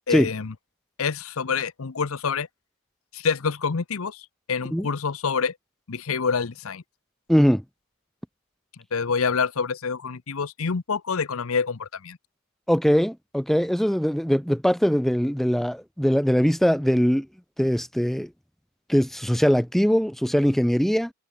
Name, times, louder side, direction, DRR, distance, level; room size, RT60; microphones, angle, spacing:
voice 1, 0.1-0.5 1.0-2.5 3.1-5.5 5.9-6.8 8.9-12.2, left 5 dB, 70° left, 0.7 m, -27 dB
voice 2, 7.3-7.6 12.7-17.3 17.6-18.3 18.9-21.1, equal, ahead, 0.5 m, -21 dB
head